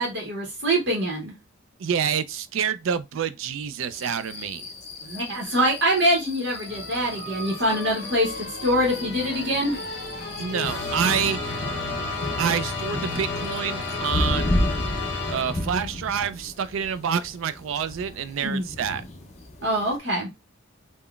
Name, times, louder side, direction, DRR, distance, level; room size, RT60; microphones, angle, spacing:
voice 1, 0.0-1.3 5.0-9.8 18.4-18.6 19.6-20.3, equal, 55° right, 0.8 m, -24 dB
voice 2, 1.8-4.6 10.4-11.4 12.4-14.6 15.3-19.0, right 7 dB, 75° right, 0.3 m, -27 dB
sound 1, 3.9-20.0, left 1 dB, 35° left, 0.5 m, -34 dB
sound 2, 6.5-16.0, left 3 dB, 50° left, 0.8 m, -32 dB
3.7 x 2.1 x 2.3 m
head